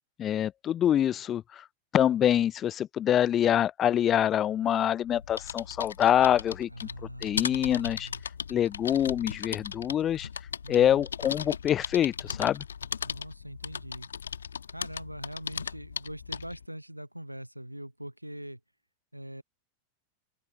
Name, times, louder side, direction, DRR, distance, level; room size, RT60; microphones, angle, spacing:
voice 1, 0.2-1.6 1.9-6.9 7.2-8.1 8.5-10.3 10.7-12.6, left 10 dB, 30° left, 0.5 m, -25 dB
sound 1, 5.0-16.6, left 7 dB, 70° left, 1.5 m, -38 dB
voice 2, 6.7-8.2 10.6-11.1 13.0-14.1 14.7-18.6 19.1-19.4, right 1 dB, 90° right, 0.9 m, -42 dB
open air
figure-of-eight pair, 90°, 0 cm